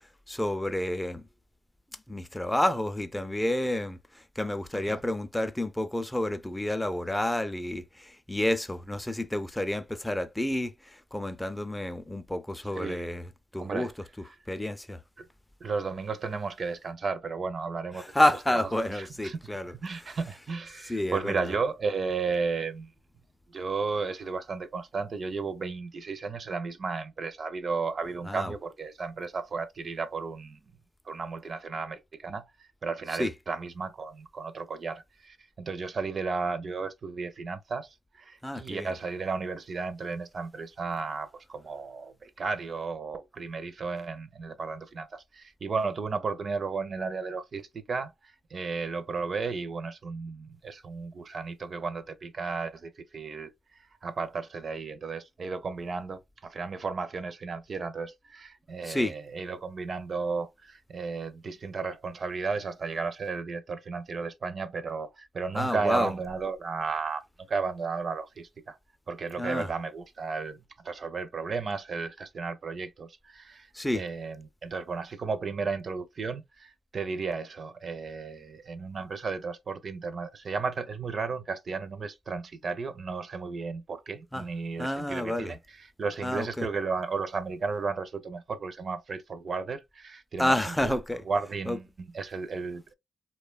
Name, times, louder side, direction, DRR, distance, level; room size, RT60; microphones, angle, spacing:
voice 1, 0.3-1.2 2.1-4.0 4.4-10.7 11.1-13.2 13.5-13.9 14.5-15.0 18.0-19.7 20.9-21.4 28.3-28.5 33.2-33.3 38.4-38.9 58.9-59.1 65.6-66.1 69.4-69.7 73.7-74.0 84.3-84.4 84.8-85.5 86.2-86.7 90.4-91.2 91.7-91.8, left 1 dB, 10° left, 0.4 m, -29 dB
voice 2, 12.8-13.1 13.6-13.9 15.2-15.3 15.6-18.0 18.5-19.4 19.8-22.9 23.5-30.6 31.1-37.9 38.2-68.8 69.1-70.6 70.8-91.0 91.3-92.9, right 4 dB, 50° right, 0.4 m, -34 dB
2.7 x 2.2 x 2.3 m
cardioid pair, 85°, 0 cm